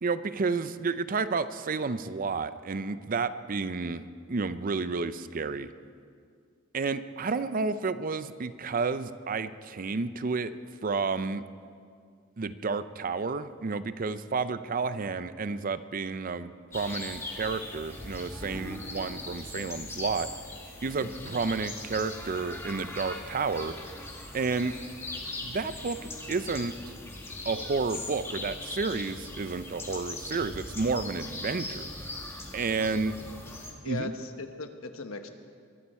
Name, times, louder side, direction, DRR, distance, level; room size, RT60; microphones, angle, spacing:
voice 1, 0.0-5.7 6.7-10.5 10.8-11.4 12.4-20.3 20.8-23.7 24.3-24.7 25.4-26.0 26.3-26.7 27.5-31.9 32.5-33.1 33.9-34.1, right 4 dB, 40° right, 13 dB, 0.5 m, -31 dB
sound 1, 16.7-33.7, left 2 dB, 15° left, 1.6 m, -40 dB
voice 2, 21.0-21.3 32.9-33.0 33.8-35.3, left 3 dB, 85° left, 7 dB, 1.2 m, -39 dB
22.5 x 13.0 x 4.4 m, 2.2 s
head